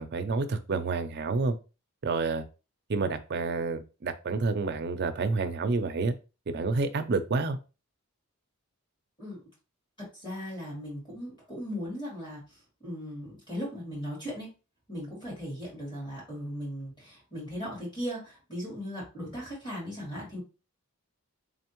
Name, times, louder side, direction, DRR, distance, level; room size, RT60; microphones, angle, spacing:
voice 1, 0.0-1.6 2.0-2.4 2.9-6.1 6.5-7.6, right 3 dB, 50° right, 8 dB, 0.5 m, -29 dB
voice 2, 10.1-12.4 12.8-14.5 14.9-20.4, equal, 20° left, -5 dB, 2.2 m, -37 dB
3.9 x 3.4 x 3.0 m, 0.31 s
head